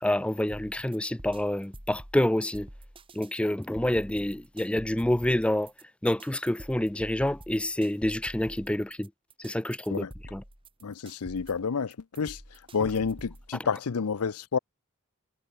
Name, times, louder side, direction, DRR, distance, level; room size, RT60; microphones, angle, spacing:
voice 1, 0.0-2.7 3.1-5.7 6.0-9.1 9.4-10.1 10.3-10.4, left 1 dB, 5° left, 0.3 m, -27 dB
sound 1, 0.5-13.5, right 1 dB, 25° right, 5.0 m, -47 dB
voice 2, 10.8-12.4 12.7-14.6, left 5 dB, 85° left, 0.6 m, -29 dB
head